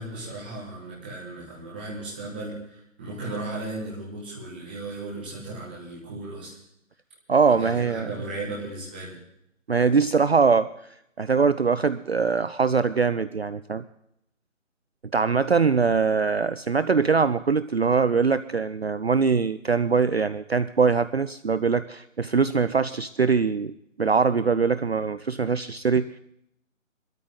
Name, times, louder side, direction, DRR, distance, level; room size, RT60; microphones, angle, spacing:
voice 1, 0.0-6.6 7.5-9.2, right 2 dB, 5° right, -6 dB, 1.6 m, -36 dB
voice 2, 7.3-8.1 9.7-10.7 11.2-13.8 15.1-26.1, right 5 dB, 55° right, 13 dB, 0.5 m, -22 dB
21.0 x 13.0 x 3.9 m, 0.75 s
figure-of-eight pair, 175°, 39 cm